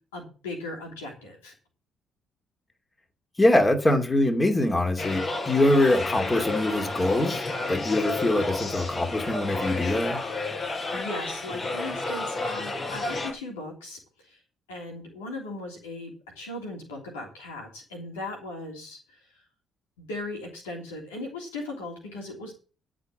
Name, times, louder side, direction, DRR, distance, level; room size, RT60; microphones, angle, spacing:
voice 1, 0.1-1.5 10.9-14.0 14.3-14.4 14.7-19.2 20.0-22.5, left 2 dB, 90° left, 0 dB, 3.2 m, -38 dB
voice 2, 3.4-10.2, left 1 dB, 20° left, 4 dB, 2.6 m, -23 dB
sound 1, 5.0-13.3, left 2 dB, 50° left, 5.3 m, -31 dB
13.5 x 5.2 x 7.4 m, 0.36 s
hypercardioid pair, 50°, 0 cm